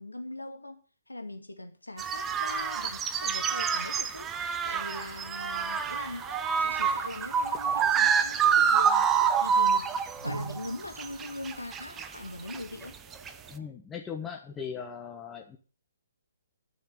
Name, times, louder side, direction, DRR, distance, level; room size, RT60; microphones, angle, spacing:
voice 1, 0.0-6.3 6.6-9.1 9.4-13.0, left 2 dB, 80° left, 6 dB, 2.1 m, -41 dB
sound 1, 2.0-10.7 11.0-12.1 12.5-12.8 13.1-13.5, right 7 dB, 15° right, 0.7 m, -27 dB
sound 2, 5.3-13.7, right 2 dB, 70° right, 2.2 m, -46 dB
voice 2, 13.5-15.6, left 7 dB, 10° left, 1 dB, 1.3 m, -39 dB
11.5 x 6.5 x 8.6 m, 0.39 s
figure-of-eight pair, 130°, 0 cm